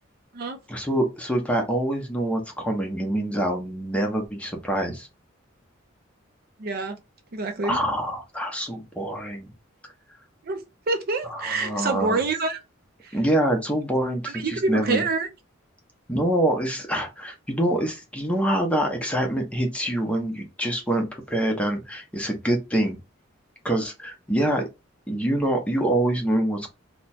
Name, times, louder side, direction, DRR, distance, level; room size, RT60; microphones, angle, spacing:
voice 1, 0.7-5.1 7.6-9.5 11.2-12.2 13.1-15.0 16.1-23.0 23.6-24.6 25.1-26.7, right 1 dB, 5° left, 0.7 m, -25 dB
voice 2, 6.6-7.0 7.3-7.8 10.4-10.6 10.9-12.6 13.0-13.2 14.2-15.3, right 3 dB, 50° right, 0.5 m, -26 dB
2.8 x 2.1 x 4.1 m
head